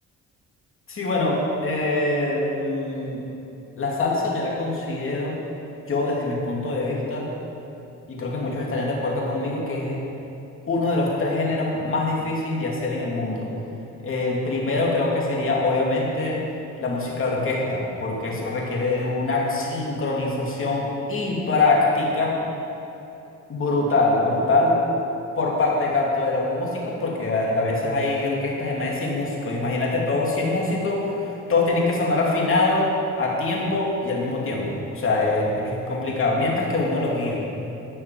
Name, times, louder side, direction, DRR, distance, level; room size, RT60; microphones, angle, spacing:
voice 1, 0.9-3.2 3.8-5.3 5.9-7.3 8.1-10.0 10.7-13.5 14.0-16.4 16.8-22.4 23.5-24.8 25.4-32.9 33.2-37.4, left 2 dB, 45° left, -3 dB, 2.8 m, -24 dB
11.5 x 6.4 x 7.7 m, 2.9 s
cardioid pair, 90°, 30 cm